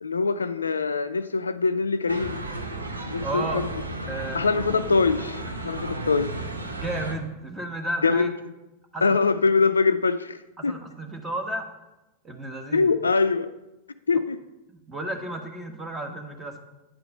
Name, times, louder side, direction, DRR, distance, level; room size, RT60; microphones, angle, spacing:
voice 1, 0.0-2.4 3.1-3.7 4.3-6.3 8.0-8.3 9.0-10.8 12.7-13.5 14.1-14.4, left 4 dB, 75° left, 12 dB, 0.4 m, -23 dB
sound 1, 2.1-7.1, right 2 dB, 80° right, 0.9 m, -33 dB
voice 2, 3.2-3.6 4.1-4.4 5.2-5.6 6.7-8.3 8.9-9.2 10.6-11.7 12.2-12.9 14.1-14.2 14.7-16.6, right 1 dB, 15° right, 4 dB, 1.5 m, -33 dB
9.1 x 4.7 x 6.5 m, 1.0 s
figure-of-eight pair, 90°, 0 cm